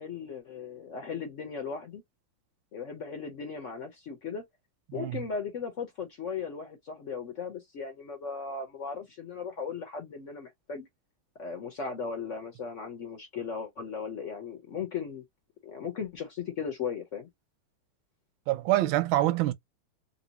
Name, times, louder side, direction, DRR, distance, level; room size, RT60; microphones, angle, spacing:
voice 1, 0.0-2.0 2.7-4.4 4.9-10.9 11.4-15.2 15.6-17.3, left 6 dB, 65° left, 0.7 m, -37 dB
voice 2, 4.9-5.2 18.5-19.5, right 15 dB, 90° right, 1.4 m, -26 dB
3.0 x 2.7 x 2.7 m
omnidirectional pair, 2.1 m